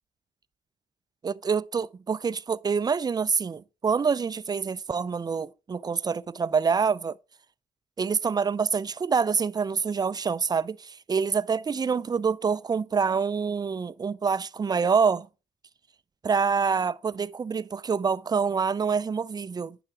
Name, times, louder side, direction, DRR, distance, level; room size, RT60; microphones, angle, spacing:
voice 1, 1.2-7.2 8.0-15.3 16.2-19.8, right 5 dB, 25° right, 0.4 m, -26 dB
9.8 x 5.8 x 4.7 m
supercardioid pair, 65°, 16 cm